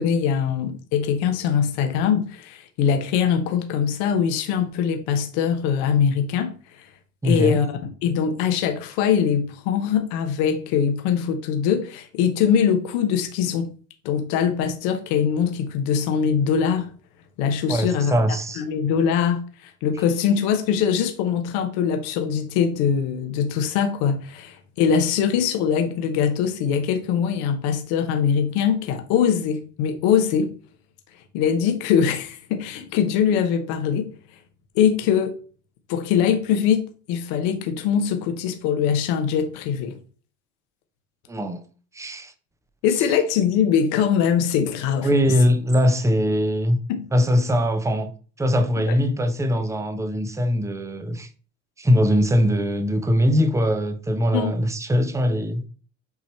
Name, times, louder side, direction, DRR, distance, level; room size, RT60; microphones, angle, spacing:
voice 1, 0.0-6.9 7.2-13.7 14.0-16.9 17.4-18.1 18.6-30.5 31.3-34.1 34.7-35.3 35.9-39.9 42.8-45.1 46.9-47.0 48.9-49.0 54.3-54.5, left 7 dB, 75° left, 1.3 m, -22 dB
voice 2, 7.2-7.6 17.7-18.6 41.3-41.6 41.9-42.3 45.0-46.8 47.1-48.1 48.4-51.3 51.8-55.6, equal, 5° right, 0.9 m, -21 dB
8.3 x 2.9 x 4.6 m
supercardioid pair, 90°, 39 cm